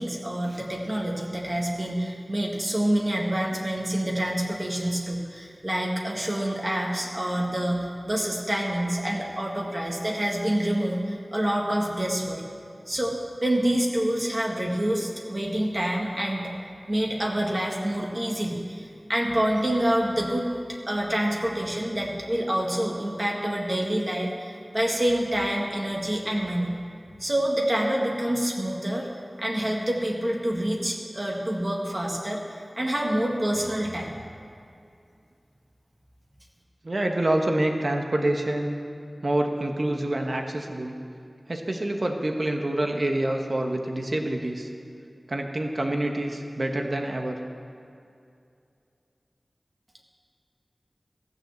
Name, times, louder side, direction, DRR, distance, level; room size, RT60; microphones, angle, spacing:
voice 1, 0.0-12.4 12.9-16.5 16.9-20.5 20.9-26.7 27.2-29.1 29.4-34.1, right 1 dB, 35° right, -1 dB, 1.5 m, -27 dB
voice 2, 36.8-38.8 39.2-41.0 41.5-44.7 45.3-47.4, right 1 dB, 55° right, 3 dB, 1.2 m, -27 dB
14.5 x 6.2 x 7.7 m, 2.5 s
wide cardioid pair, 70°, 0 cm